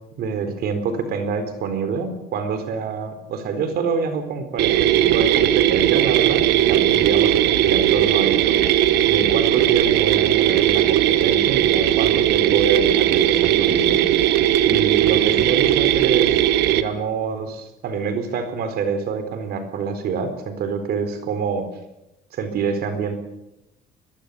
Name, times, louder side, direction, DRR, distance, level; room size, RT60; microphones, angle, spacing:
voice 1, 0.2-8.6 9.1-14.0 14.6-16.4 16.7-21.7 22.3-23.2, right 5 dB, 70° right, 8 dB, 4.1 m, -26 dB
sound 1, 4.6-16.8, right 12 dB, 90° right, 1.3 m, -18 dB
22.5 x 20.5 x 6.8 m, 0.89 s
cardioid pair, 110°, 17 cm